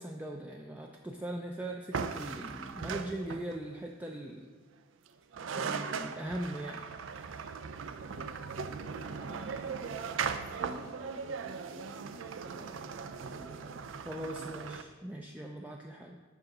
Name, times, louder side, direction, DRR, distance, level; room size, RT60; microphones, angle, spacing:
voice 1, 0.0-4.5 5.5-6.9 14.1-16.2, right 1 dB, 10° right, 0 dB, 0.4 m, -40 dB
sound 1, 1.9-3.7 5.1-5.2 5.3-14.8, right 6 dB, 80° right, 0.4 m, -38 dB
voice 2, 7.8-8.3 8.7-10.3 10.5-13.8, right 1 dB, 65° right, -3 dB, 0.9 m, -51 dB
7.1 x 3.9 x 6.4 m, 1.4 s
head